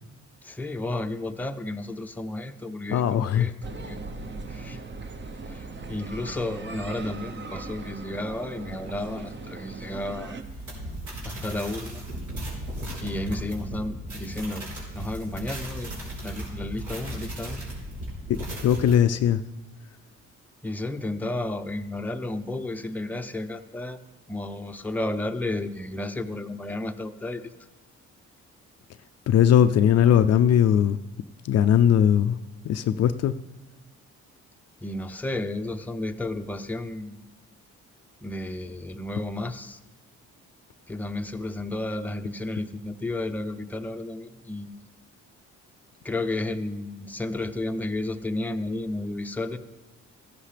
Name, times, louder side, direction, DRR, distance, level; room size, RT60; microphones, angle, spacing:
voice 1, 0.4-4.0 4.5-4.8 5.5-10.4 11.2-12.0 13.0-14.7 14.9-15.9 16.2-17.7 20.6-24.0 24.3-27.5 34.8-37.2 38.2-39.8 40.9-44.7 46.0-49.6, left 2 dB, 5° left, 6 dB, 0.6 m, -32 dB
voice 2, 2.9-3.5 18.3-19.4 29.3-31.0 31.4-32.4 32.6-33.3, left 9 dB, 55° left, 10 dB, 0.4 m, -20 dB
sound 1, 3.6-10.4, right 3 dB, 35° right, 0.9 m, -39 dB
sound 2, 10.4-18.9, right 1 dB, 75° right, 4.3 m, -36 dB
14.5 x 11.5 x 3.4 m, 1.1 s
cardioid pair, 90°, 30 cm